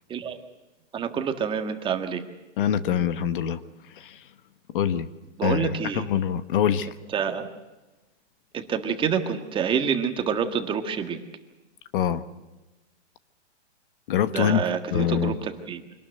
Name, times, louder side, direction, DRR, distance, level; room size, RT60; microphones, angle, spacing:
voice 1, 0.9-2.2 5.4-6.1 7.1-7.5 8.5-11.2 14.3-15.8, right 7 dB, 15° right, 6 dB, 1.6 m, -27 dB
voice 2, 2.6-3.6 4.0-4.2 4.7-5.1 5.4-6.9 11.9-12.2 14.1-14.6 14.9-15.4, left 9 dB, 45° left, 12 dB, 1.3 m, -24 dB
25.5 x 19.5 x 7.9 m, 1.1 s
hypercardioid pair, 150°, 35 cm